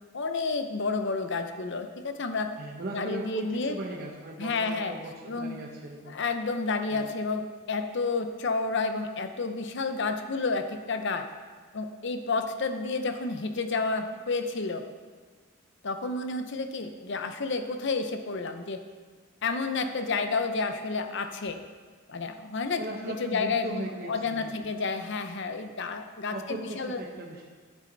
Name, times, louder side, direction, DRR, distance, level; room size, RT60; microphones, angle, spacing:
voice 1, 0.1-2.5 2.9-3.8 4.4-4.9 5.3-5.6 6.1-11.3 11.7-14.8 15.8-18.8 19.4-21.6 22.1-27.0, left 4 dB, 50° left, 8 dB, 0.6 m, -30 dB
voice 2, 2.6-6.2 6.9-7.1 22.8-24.5 26.3-27.4, right 1 dB, 45° right, -2 dB, 0.9 m, -38 dB
9.7 x 8.5 x 3.9 m, 1.5 s
head